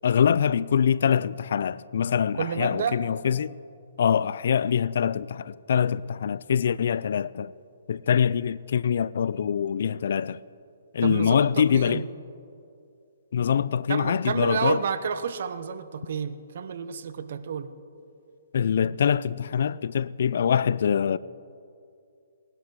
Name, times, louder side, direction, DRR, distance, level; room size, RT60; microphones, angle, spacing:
voice 1, 0.0-3.6 4.0-7.5 7.9-10.4 10.9-12.0 13.3-14.8 18.5-21.2, left 8 dB, 65° left, 0.3 m, -24 dB
voice 2, 2.3-3.0 11.0-12.1 13.9-17.7, right 7 dB, 60° right, 0.9 m, -30 dB
19.5 x 11.5 x 4.8 m
hypercardioid pair, 145°, 0 cm